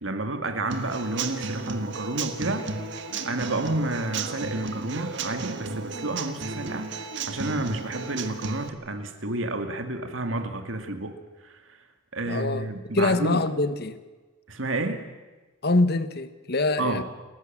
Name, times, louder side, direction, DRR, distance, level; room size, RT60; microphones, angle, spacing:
voice 1, 0.0-2.7 3.2-11.2 12.1-13.4 14.5-15.1 16.8-17.0, right 2 dB, 80° right, 2.3 m, -30 dB
Human voice / Acoustic guitar / Drum, 0.7-8.7, right 4 dB, 65° right, 1.7 m, -34 dB
voice 2, 12.3-12.7 12.9-14.0 15.6-17.0, left 2 dB, 55° left, 1.3 m, -24 dB
29.5 x 15.0 x 7.5 m
head